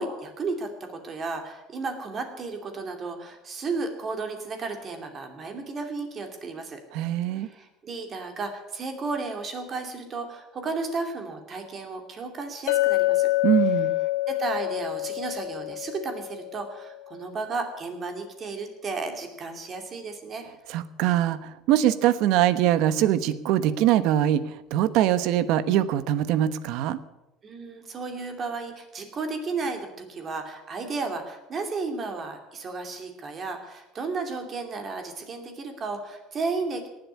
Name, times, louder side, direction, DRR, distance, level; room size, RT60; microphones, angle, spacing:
voice 1, 0.0-6.8 7.3-13.3 14.3-20.5 27.4-36.9, right 3 dB, 30° right, 5 dB, 2.6 m, -33 dB
voice 2, 6.9-7.5 13.4-14.0 20.7-27.0, right 12 dB, 65° right, 15 dB, 1.0 m, -23 dB
Chink clink, 12.7-16.9, left 19 dB, 85° left, 0.6 m, -26 dB
18.0 x 7.9 x 9.5 m, 0.96 s
cardioid pair, 150°, 0 cm